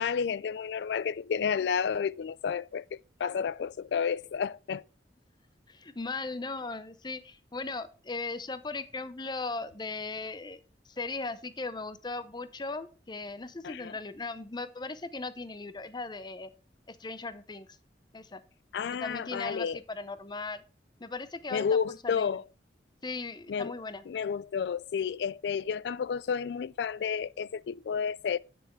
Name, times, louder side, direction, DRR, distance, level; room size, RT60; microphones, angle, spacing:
voice 1, 0.0-4.8 13.6-13.9 18.7-19.8 21.5-22.4 23.5-23.7 24.1-28.4, left 6 dB, 65° left, 0.3 m, -31 dB
voice 2, 5.7-10.6 10.9-16.5 16.9-17.7 18.1-18.4 19.0-20.6 21.0-22.3 23.0-24.0, left 3 dB, 25° left, 0.7 m, -38 dB
8.8 x 6.9 x 4.4 m
head